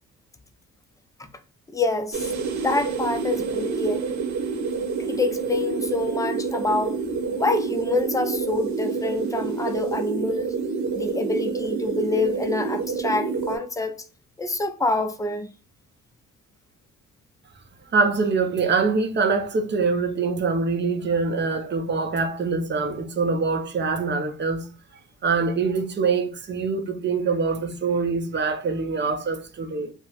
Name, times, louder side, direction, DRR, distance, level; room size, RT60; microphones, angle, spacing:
voice 1, 1.7-2.2 2.6-4.1 5.0-7.0 7.3-10.6 10.9-14.0 14.4-15.5, left 3 dB, 10° left, 0.4 m, -26 dB
sound 1, 2.1-13.6, right 5 dB, 70° right, 0.9 m, -28 dB
voice 2, 17.9-24.7 25.2-29.9, right 4 dB, 35° right, 0.5 m, -24 dB
2.8 x 2.1 x 2.9 m
cardioid pair, 90°, 30 cm